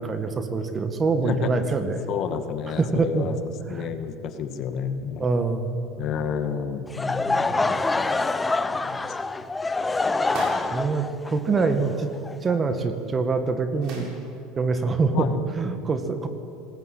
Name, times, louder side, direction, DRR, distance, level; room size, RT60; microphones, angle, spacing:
voice 1, 0.0-2.0 2.8-3.3 3.7-3.9 5.2-5.9 7.5-8.2 10.7-12.1 12.4-14.1 14.6-16.3, right 4 dB, 25° right, 8 dB, 1.9 m, -25 dB
voice 2, 2.1-3.4 3.7-5.3 6.0-7.4 8.8-9.1 15.1-15.4, left 7 dB, 50° left, 8 dB, 1.9 m, -30 dB
Laughter / Crowd, 6.9-12.8, left 3 dB, 10° left, 0.8 m, -26 dB
sound 1, 10.2-10.8 12.7-12.8 13.0-13.1 13.8-14.2, right 3 dB, 50° right, 7.1 m, -37 dB
26.5 x 19.5 x 8.7 m, 2.7 s
supercardioid pair, 135°, 0 cm